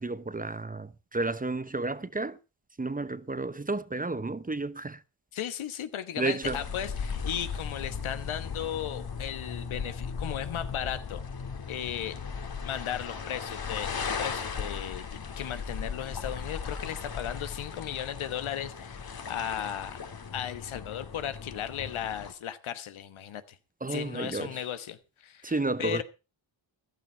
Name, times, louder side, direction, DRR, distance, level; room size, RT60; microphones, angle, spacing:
voice 1, 0.0-2.4 2.8-5.0 6.2-6.6 23.8-24.6 25.4-26.0, right 3 dB, 20° right, 0.8 m, -32 dB
voice 2, 5.3-11.2 11.7-12.2 12.6-20.0 20.3-23.6 23.9-25.5 25.8-26.0, left 10 dB, 90° left, 1.3 m, -36 dB
sound 1, 6.4-22.3, left 5 dB, 50° left, 1.8 m, -37 dB
15.0 x 11.5 x 4.4 m
cardioid pair, 75°, 47 cm